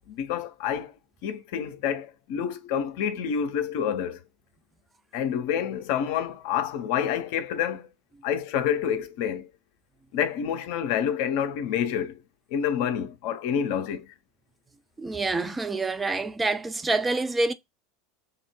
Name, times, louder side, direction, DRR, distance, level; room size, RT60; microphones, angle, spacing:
voice 1, 0.1-0.9 1.2-4.2 5.1-7.9 8.2-9.5 10.1-12.2 12.5-14.1, left 8 dB, 60° left, 0.5 m, -28 dB
voice 2, 15.0-17.5, right 3 dB, 15° right, 0.4 m, -27 dB
3.5 x 2.0 x 3.0 m
figure-of-eight pair, 80°, 0 cm